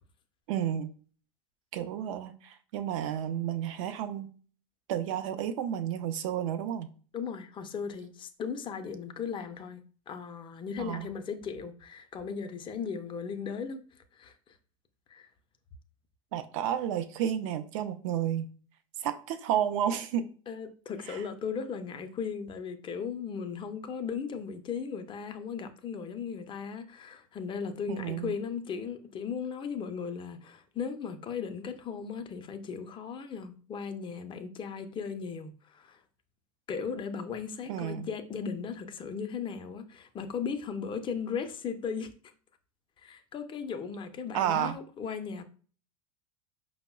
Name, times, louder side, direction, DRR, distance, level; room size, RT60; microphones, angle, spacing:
voice 1, 0.5-0.9 1.7-4.3 4.9-6.9 10.8-11.1 16.3-18.5 19.0-20.3 21.1-21.2 27.9-28.3 37.7-38.1 44.3-44.8, right 10 dB, 65° right, 0.5 m, -31 dB
voice 2, 7.1-13.8 14.1-14.6 15.1-15.3 20.5-36.0 36.7-42.1 43.0-45.4, left 6 dB, 30° left, 0.5 m, -37 dB
5.2 x 2.0 x 2.2 m
hypercardioid pair, 85°, 18 cm